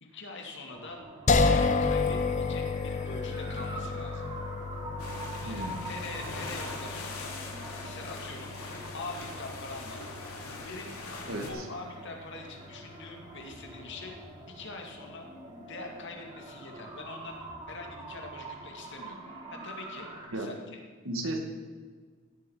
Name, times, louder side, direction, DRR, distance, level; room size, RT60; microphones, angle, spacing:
voice 1, 0.0-1.0 1.4-4.3 5.4-7.3 7.8-8.5 8.9-10.1 10.6-10.9 11.5-14.2 14.5-15.3 15.7-17.4 17.7-19.2 19.5-20.8, left 3 dB, 55° left, 2 dB, 2.4 m, -43 dB
sound 1, 0.7-20.3, right 2 dB, 20° right, 2.3 m, -45 dB
sound 2, 1.3-14.3, left 4 dB, 35° left, 0.8 m, -32 dB
sound 3, 5.0-11.5, left 3 dB, 90° left, 2.8 m, -42 dB
voice 2, 5.4-5.9 11.3-11.6 20.3-20.5 21.0-21.4, right 1 dB, 65° right, 3 dB, 2.3 m, -34 dB
16.5 x 8.0 x 7.3 m, 1.6 s
head